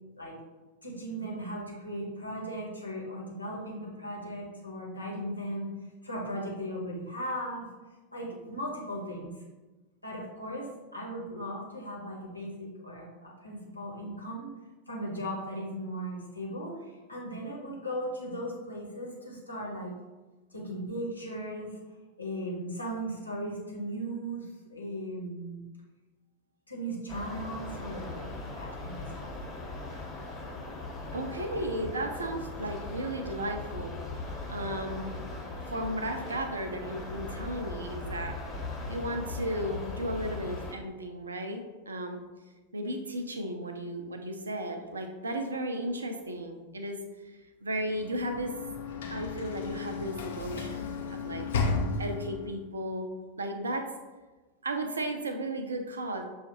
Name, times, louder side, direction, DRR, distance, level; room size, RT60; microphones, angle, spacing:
voice 1, 0.8-5.7 6.0-7.7 8.1-9.3 10.0-14.5 14.9-19.9 20.5-21.8 22.2-25.6 26.7-28.3 28.6-29.3, equal, 85° left, -3 dB, 1.0 m, -37 dB
sound 1, 27.1-40.7, left 2 dB, 15° left, 1.1 m, -39 dB
voice 2, 31.1-33.9 34.5-35.2 35.6-38.4 38.9-42.2 42.7-48.5 49.1-51.5 52.0-53.1 53.4-53.9 54.6-56.2, right 1 dB, 75° right, 5 dB, 0.5 m, -35 dB
Sliding door / Slam, 47.9-52.6, left 4 dB, 60° left, 0.5 m, -34 dB
6.3 x 2.4 x 2.9 m, 1.2 s
figure-of-eight pair, 90°, 0 cm